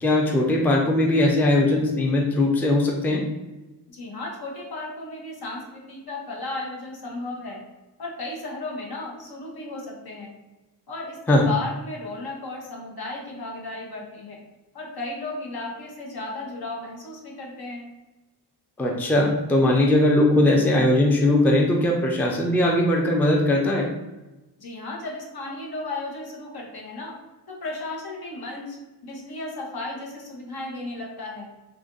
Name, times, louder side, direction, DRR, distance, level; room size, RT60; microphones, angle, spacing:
voice 1, 0.0-3.2 11.3-11.5 18.8-23.9, left 1 dB, 5° left, 0 dB, 0.4 m, -20 dB
voice 2, 3.9-7.6 8.0-10.3 10.9-14.4 14.7-17.9 24.6-27.2 27.5-28.8 29.0-31.5, left 2 dB, 65° left, -1 dB, 1.0 m, -34 dB
3.4 x 2.5 x 3.7 m, 1.1 s
wide cardioid pair, 130°, 40 cm